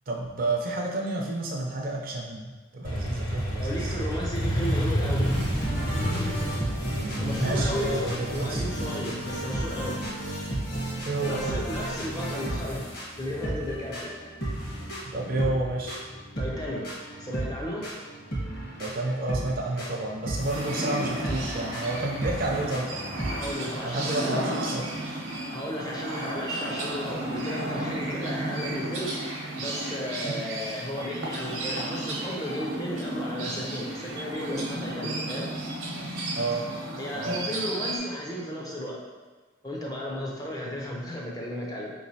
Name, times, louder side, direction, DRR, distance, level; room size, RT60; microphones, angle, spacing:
voice 1, 0.1-3.9 6.9-8.6 11.0-11.6 15.1-16.0 18.8-22.9 23.8-25.0 30.2-30.4 36.3-36.6 37.1-37.4, right 2 dB, 45° right, 0 dB, 0.5 m, -30 dB
Motorcycle, 2.8-10.5, equal, 85° left, 0.9 m, -29 dB
voice 2, 3.6-5.3 7.2-8.1 8.3-10.0 11.2-14.1 16.4-16.8 17.2-17.9 23.3-24.4 25.5-29.3 29.6-35.5 37.0-39.0 39.6-41.9, equal, 20° left, -3 dB, 0.5 m, -34 dB
sound 1, 5.2-23.5, right 1 dB, 45° left, 1.1 m, -34 dB
sound 2, 20.5-38.0, right 1 dB, 70° right, 0.8 m, -33 dB
4.3 x 3.1 x 2.7 m, 1.3 s
head